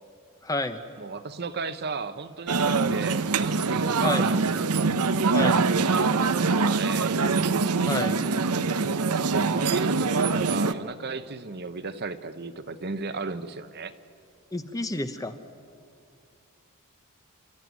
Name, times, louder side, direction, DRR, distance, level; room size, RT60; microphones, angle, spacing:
voice 1, 0.4-0.8 4.0-4.3 5.3-5.6 7.8-8.2 14.5-15.4, left 2 dB, 15° left, 9 dB, 0.9 m, -29 dB
voice 2, 1.0-4.4 5.6-7.2 9.3-13.9, right 4 dB, 45° right, 10 dB, 0.9 m, -34 dB
sound 1, 2.5-10.7, right 4 dB, 85° right, 0.8 m, -24 dB
29.5 x 14.0 x 9.5 m, 2.3 s
head